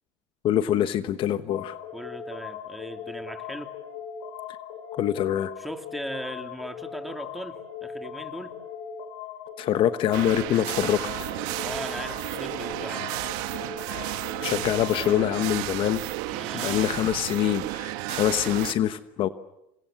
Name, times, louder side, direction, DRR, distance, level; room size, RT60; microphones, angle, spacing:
voice 1, 0.4-1.8 4.9-5.5 9.6-11.0 14.4-16.0 16.5-19.3, left 11 dB, 50° left, 12 dB, 1.1 m, -25 dB
sound 1, 1.5-15.4, left 7 dB, 80° left, 6.0 m, -39 dB
voice 2, 1.9-3.7 5.6-8.6 11.5-13.1 16.3-16.9, equal, ahead, 6 dB, 2.9 m, -38 dB
sound 2, 10.1-18.7, right 17 dB, 80° right, 1.8 m, -32 dB
28.5 x 26.5 x 7.6 m, 0.88 s
supercardioid pair, 115°, 11 cm